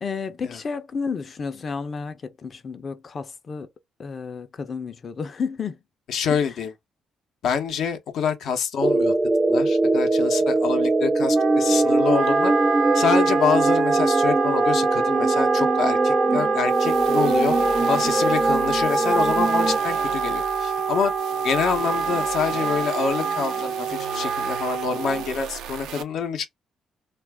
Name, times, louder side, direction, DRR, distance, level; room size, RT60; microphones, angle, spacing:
voice 1, 0.0-3.7 4.0-5.8 6.3-6.5, left 5 dB, 45° left, 0.6 m, -31 dB
voice 2, 6.1-6.7 7.4-9.2 9.5-12.5 12.9-17.6 17.9-21.1 21.4-26.6, left 7 dB, 75° left, 0.8 m, -26 dB
sound 1, 8.8-19.8, right 2 dB, 25° right, 0.4 m, -21 dB
Wind instrument woodwind instrument, 11.3-25.4, right 5 dB, 55° right, 0.7 m, -26 dB
sound 2, 16.6-26.0, right 7 dB, 90° right, 0.6 m, -37 dB
2.5 x 2.4 x 3.4 m
cardioid pair, 90°, 0 cm